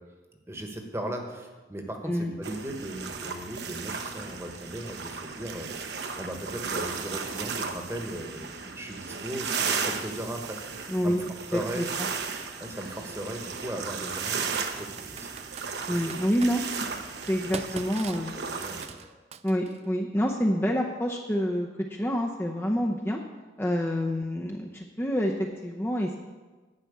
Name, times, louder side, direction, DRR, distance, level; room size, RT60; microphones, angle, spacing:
voice 1, 0.5-10.6 11.0-11.2 11.5-11.9 12.6-15.3 15.9-16.2 18.0-18.1 18.3-18.8, right 1 dB, 15° right, 3 dB, 1.2 m, -37 dB
sound 1, 2.4-18.9, right 5 dB, 70° right, 0.9 m, -35 dB
sound 2, 10.7-11.5 12.5-13.6 16.8-17.8 18.1-19.2 22.8-22.9, right 2 dB, 55° right, 1.4 m, -53 dB
voice 2, 10.9-11.8 15.9-16.6 17.3-18.3 19.4-23.2 23.6-26.2, equal, 15° left, 0 dB, 0.6 m, -27 dB
Computer keyboard, 12.0-12.1 13.6-13.9 14.8-16.6 17.2-19.9, right 6 dB, 35° right, 0.4 m, -42 dB
11.0 x 5.8 x 8.4 m, 1.3 s
head